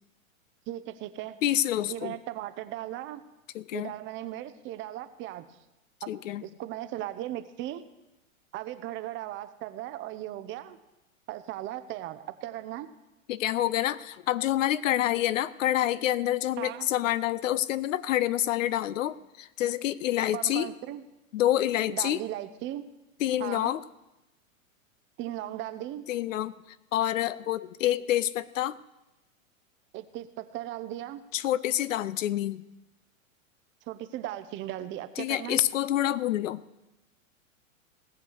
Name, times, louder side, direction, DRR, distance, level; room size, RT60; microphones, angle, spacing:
voice 1, 0.7-1.4 1.9-3.2 3.7-5.4 6.0-6.1 6.4-7.8 8.5-10.8 11.3-12.9 16.6-16.9 20.3-21.0 21.9-22.8 23.4-23.7 25.2-26.0 29.9-31.2 33.9-35.6, right 13 dB, 30° right, 12 dB, 0.7 m, -37 dB
voice 2, 1.4-2.2 3.5-3.9 6.1-6.4 13.3-20.7 21.3-22.2 23.2-23.8 26.1-26.5 26.9-28.8 31.3-32.6 35.2-36.6, left 13 dB, 70° left, 17 dB, 0.7 m, -27 dB
18.0 x 7.0 x 6.3 m, 0.97 s
hypercardioid pair, 120°, 41 cm